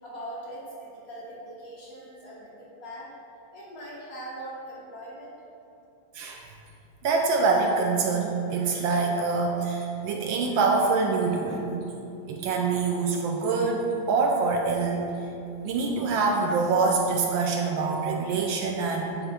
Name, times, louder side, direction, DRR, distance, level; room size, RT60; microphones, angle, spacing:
voice 1, 0.0-3.1 3.5-5.3, right 1 dB, 50° left, -6 dB, 1.4 m, -41 dB
voice 2, 7.0-11.7 12.3-15.1 15.6-19.2, right 4 dB, 75° right, 1 dB, 1.2 m, -25 dB
8.6 x 3.6 x 3.3 m, 2.8 s
omnidirectional pair, 2.3 m